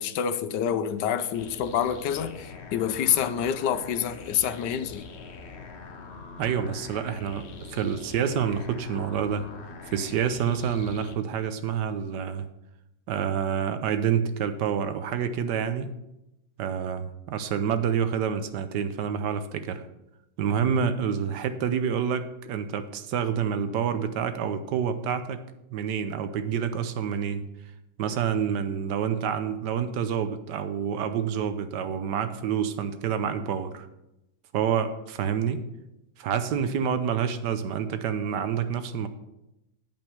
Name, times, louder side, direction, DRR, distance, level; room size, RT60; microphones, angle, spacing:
voice 1, 0.0-5.0, left 9 dB, 80° left, 1.3 m, -27 dB
sound 1, 1.3-11.1, left 4 dB, 50° left, 1.0 m, -43 dB
voice 2, 6.4-7.4 7.7-9.5 9.9-12.5 13.1-15.9 16.6-19.8 20.4-25.4 25.7-27.4 28.0-33.9 34.5-35.6 36.2-39.1, right 7 dB, 80° right, 1.4 m, -28 dB
8.9 x 5.3 x 7.0 m
omnidirectional pair, 1.8 m